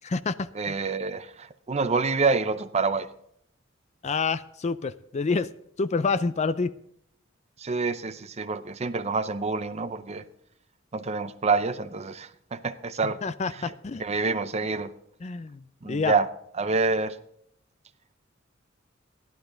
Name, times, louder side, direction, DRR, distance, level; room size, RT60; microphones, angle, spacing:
voice 1, 0.0-0.7 4.0-5.5 5.8-6.7 13.0-14.0 15.2-16.2, left 4 dB, 35° left, 14 dB, 0.4 m, -28 dB
voice 2, 0.6-3.1 7.6-10.2 10.9-13.2 14.0-14.9 15.8-16.3 16.6-17.2, right 4 dB, 35° right, 12 dB, 0.6 m, -27 dB
15.0 x 11.5 x 3.9 m, 0.71 s
head